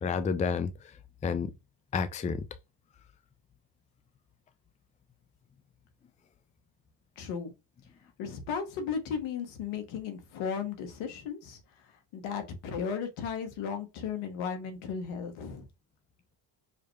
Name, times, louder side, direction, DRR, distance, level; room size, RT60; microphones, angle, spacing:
voice 1, 0.0-1.5 1.9-2.5, left 5 dB, 15° left, 0.4 m, -31 dB
voice 2, 7.2-7.5 8.2-11.6 12.1-15.6, left 6 dB, 80° left, 1.3 m, -35 dB
4.8 x 2.1 x 3.2 m
supercardioid pair, 70°, 49 cm